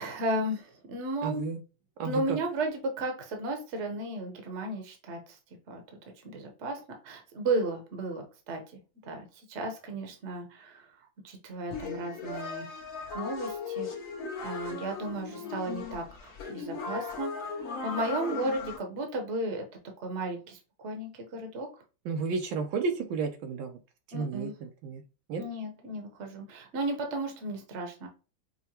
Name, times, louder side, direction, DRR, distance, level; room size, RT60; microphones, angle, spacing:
voice 1, 0.0-1.4 2.0-5.4 5.7-5.8 6.2-8.6 9.1-10.8 11.2-12.7 13.1-13.9 14.4-17.3 17.8-19.6 20.0-21.7 24.1-24.5 25.4-28.1, right 2 dB, 45° right, 3 dB, 0.9 m, -34 dB
voice 2, 1.2-1.6 2.0-2.4 22.0-23.8 24.1-25.0 25.3-25.4, right 4 dB, 75° right, 5 dB, 1.3 m, -32 dB
sound 1, 11.7-18.8, left 5 dB, 55° left, 1.0 m, -37 dB
5.5 x 2.2 x 2.8 m, 0.33 s
omnidirectional pair, 2.3 m